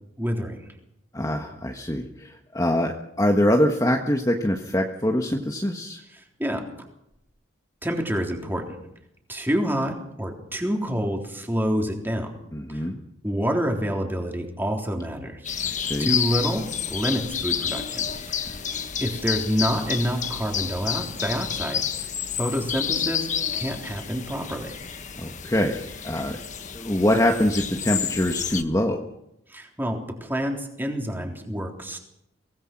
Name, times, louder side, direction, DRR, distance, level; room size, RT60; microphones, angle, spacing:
voice 1, 0.2-0.6 6.4-6.7 7.8-8.8 9.3-12.3 12.7-12.8 13.2-15.4 16.0-18.4 19.0-21.8 22.4-23.3 23.5-24.8 29.5-32.0, equal, 10° right, 2 dB, 3.6 m, -27 dB
voice 2, 1.1-2.9 3.2-6.0 12.5-13.0 15.6-16.1 25.2-26.4 26.7-29.0, left 1 dB, 15° left, 2 dB, 1.5 m, -24 dB
sound 1, 15.4-28.6, left 8 dB, 40° left, 1.4 m, -30 dB
24.0 x 18.5 x 6.1 m, 0.79 s
head